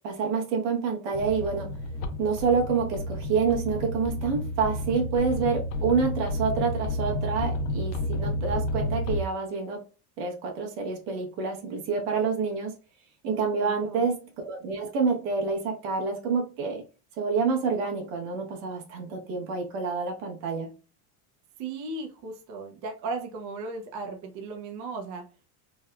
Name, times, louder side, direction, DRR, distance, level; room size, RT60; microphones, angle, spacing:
voice 1, 0.0-1.7 2.2-9.8 10.2-12.7 13.2-16.8 17.2-20.7, right 5 dB, 85° right, 1.2 m, -28 dB
sound 1, 1.1-9.2, left 1 dB, 85° left, 0.6 m, -31 dB
voice 2, 13.6-14.0 21.6-25.2, right 3 dB, 45° right, 0.6 m, -36 dB
3.3 x 2.2 x 2.3 m
cardioid pair, 160°, 44 cm